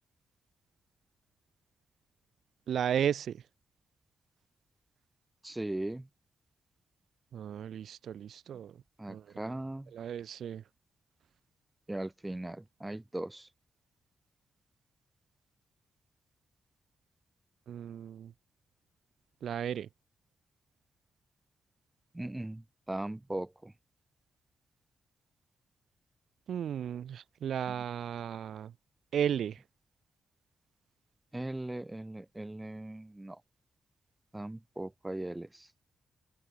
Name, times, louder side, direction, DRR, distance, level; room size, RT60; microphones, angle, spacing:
voice 1, 2.7-3.4 7.3-8.8 9.1-9.3 9.9-10.6 17.7-18.3 19.4-19.9 26.5-28.7 29.1-29.6, right 9 dB, 70° right, 4.6 m, -34 dB
voice 2, 5.4-6.1 9.0-9.9 11.9-13.5 22.1-23.7 31.3-33.4 34.3-35.7, right 1 dB, 10° right, 3.3 m, -39 dB
open air
wide cardioid pair, 165°, 0 cm